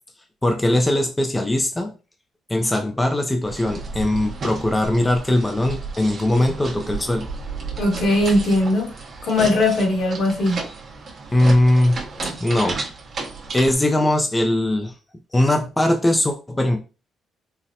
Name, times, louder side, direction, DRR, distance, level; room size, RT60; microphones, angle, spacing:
voice 1, 0.4-1.9 2.5-7.3 11.3-12.0 12.4-12.8 13.5-15.0 15.3-16.8, left 1 dB, 15° left, 0.4 m, -20 dB
sound 1, 3.4-13.8, right 4 dB, 50° right, 0.9 m, -33 dB
voice 2, 7.8-8.9 9.2-10.7, left 1 dB, 65° left, 1.4 m, -19 dB
4.0 x 2.1 x 2.7 m
cardioid pair, 90°, 0 cm